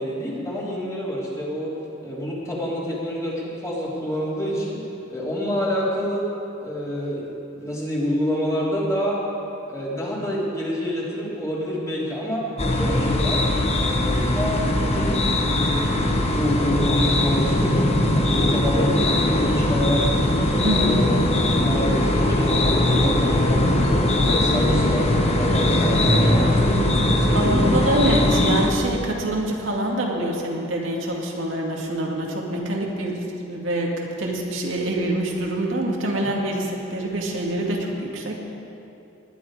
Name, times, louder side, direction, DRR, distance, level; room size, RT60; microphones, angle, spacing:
voice 1, 0.0-4.8 5.1-6.3 6.6-7.3 7.6-9.2 9.7-13.4 13.7-20.1 20.6-21.2 21.4-26.7 27.1-27.8, equal, 15° left, -6 dB, 3.1 m, -28 dB
sound 1, 12.6-28.7, left 1 dB, 35° left, 1.2 m, -20 dB
voice 2, 20.6-21.0 27.3-33.2 33.5-38.4, right 1 dB, 80° right, -1 dB, 2.1 m, -25 dB
19.5 x 10.5 x 4.9 m, 2.8 s
head